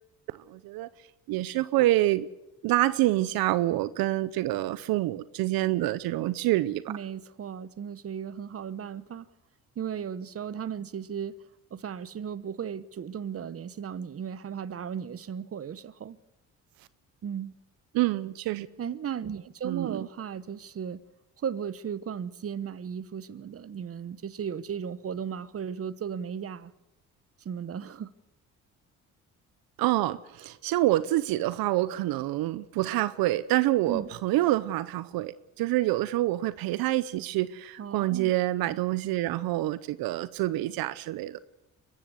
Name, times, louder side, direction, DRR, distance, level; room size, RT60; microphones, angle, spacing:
voice 1, 0.5-0.9 1.3-2.3 2.6-6.8 17.9-18.7 19.6-20.1 29.8-41.4, right 16 dB, 80° right, 0.8 m, -27 dB
voice 2, 6.9-9.3 9.8-11.3 11.7-16.2 17.2-17.5 18.8-21.0 21.4-26.7 27.4-28.1 33.9-34.1 37.8-38.3, right 8 dB, 40° right, 1.0 m, -35 dB
23.5 x 14.0 x 8.0 m
supercardioid pair, 75°, 35 cm